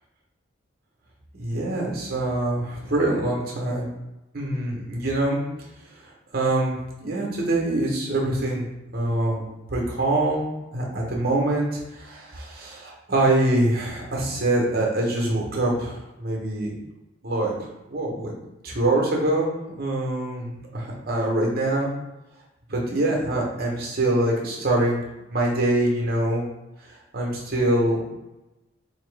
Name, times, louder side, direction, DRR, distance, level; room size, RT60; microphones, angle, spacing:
voice 1, 1.3-3.9 4.3-5.4 6.3-8.6 8.9-9.4 9.7-10.5 10.7-16.7 17.2-17.5 17.9-18.3 18.6-19.5 19.8-21.9 22.7-25.0 25.3-26.5 27.1-28.2, right 1 dB, 50° right, -2 dB, 0.9 m, -24 dB
3.8 x 2.9 x 3.3 m, 0.99 s
head